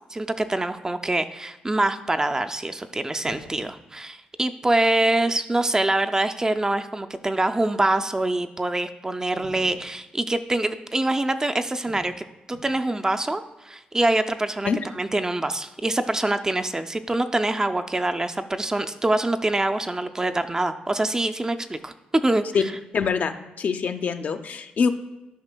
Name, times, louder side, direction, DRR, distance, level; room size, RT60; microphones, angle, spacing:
voice 1, 0.1-14.7 15.0-21.9 22.2-22.4, right 2 dB, 20° right, 8 dB, 0.4 m, -25 dB
sound 1, 3.2-3.8 9.4-9.9 11.8-12.2 12.5-12.8, right 1 dB, 80° right, 2.6 m, -44 dB
voice 2, 22.9-24.9, left 6 dB, 60° left, 8 dB, 0.5 m, -24 dB
12.0 x 5.2 x 2.2 m, 0.96 s
cardioid pair, 80°, 3 cm